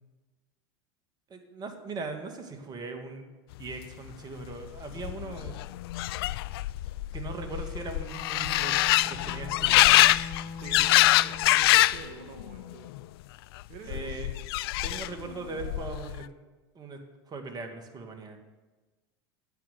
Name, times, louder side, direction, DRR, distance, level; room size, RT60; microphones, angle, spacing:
voice 1, 1.3-3.2 3.6-5.5 7.1-8.7 9.0-10.1 13.9-14.3 14.8-16.2 16.8-17.0 17.3-18.4, right 4 dB, 30° right, 5 dB, 2.2 m, -39 dB
sound 1, 4.5-4.6 4.8-12.1 12.4-13.0 13.9-15.3 15.6-16.2, left 17 dB, 70° left, 0.4 m, -24 dB
Bowed string instrument, 7.9-11.7, left 4 dB, 15° left, 2.7 m, -43 dB
voice 2, 10.6-12.9 13.7-14.2, right 5 dB, 60° right, 4 dB, 1.7 m, -46 dB
10.5 x 8.6 x 9.3 m, 1.2 s
hypercardioid pair, 90°, 13 cm